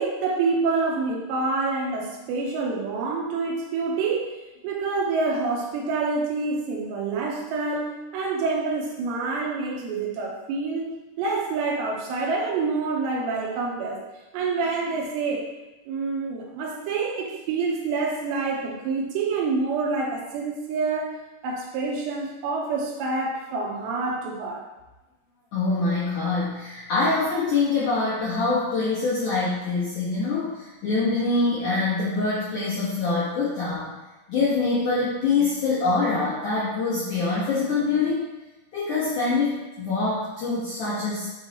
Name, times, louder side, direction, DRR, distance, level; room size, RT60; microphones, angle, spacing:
voice 1, 0.0-4.3 4.6-14.0 14.3-15.5 15.9-21.1 21.4-24.6, right 4 dB, 75° right, -2 dB, 2.9 m, -27 dB
voice 2, 25.5-33.9 34.3-38.3 38.7-41.3, left 3 dB, 85° left, -9 dB, 1.7 m, -24 dB
9.1 x 4.3 x 2.9 m, 1.1 s
omnidirectional pair, 5.7 m